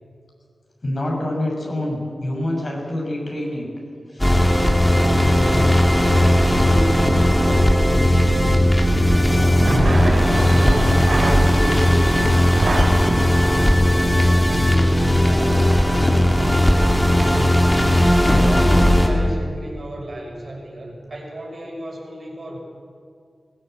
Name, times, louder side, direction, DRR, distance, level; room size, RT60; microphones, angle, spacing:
voice 1, 0.8-3.7 4.1-4.6 10.5-12.3, left 1 dB, 45° left, -1 dB, 6.6 m, -27 dB
sound 1, 4.2-19.1, left 1 dB, 15° left, 3.3 m, -17 dB
voice 2, 4.9-8.6 13.9-22.6, equal, 55° right, -1 dB, 6.5 m, -34 dB
sound 2, 6.1-12.9, right 2 dB, 80° right, 4.4 m, -24 dB
21.0 x 17.0 x 8.0 m, 2.3 s
wide cardioid pair, 70°, 0 cm